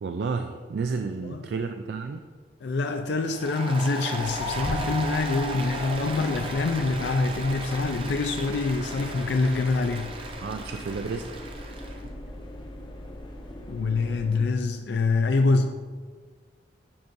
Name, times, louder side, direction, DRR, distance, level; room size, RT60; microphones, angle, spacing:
voice 1, 0.0-2.3 10.4-11.3, right 4 dB, 70° right, 7 dB, 0.3 m, -31 dB
voice 2, 1.0-1.4 2.6-10.2 13.7-15.8, left 3 dB, 70° left, 6 dB, 0.4 m, -25 dB
Applause, 3.3-12.0, right 2 dB, 30° right, 0.6 m, -36 dB
sound 1, 4.2-14.4, left 1 dB, 25° left, 0.6 m, -40 dB
10.5 x 5.3 x 2.6 m, 1.5 s
head